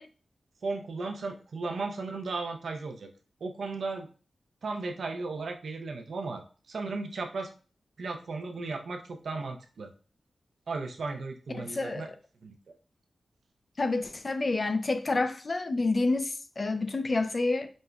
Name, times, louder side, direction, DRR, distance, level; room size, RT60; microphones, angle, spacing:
voice 1, 0.6-3.1 3.4-4.1 4.6-7.5 8.0-9.9 10.7-12.1 12.4-12.8, right 3 dB, 80° right, 0.5 m, -35 dB
voice 2, 11.5-12.1 13.8-17.7, left 3 dB, 50° left, 0.4 m, -28 dB
5.1 x 2.1 x 2.3 m
cardioid pair, 45°, 0 cm